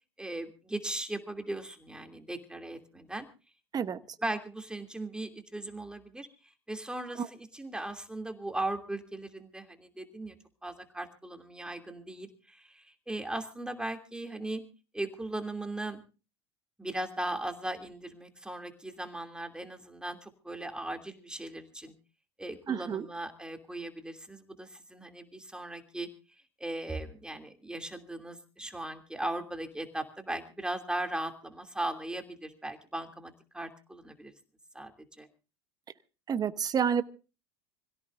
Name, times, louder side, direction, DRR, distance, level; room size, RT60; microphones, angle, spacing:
voice 1, 0.2-3.3 4.2-6.3 6.7-10.4 10.6-14.6 14.9-16.0 16.8-21.9 22.4-26.1 26.6-34.3 34.7-34.9 35.2-35.3, right 1 dB, 5° right, 6 dB, 2.8 m, -38 dB
voice 2, 22.7-23.1 36.3-37.0, right 7 dB, 30° right, 13 dB, 1.0 m, -29 dB
26.0 x 17.0 x 2.6 m, 0.33 s
hypercardioid pair, 90°, 14 cm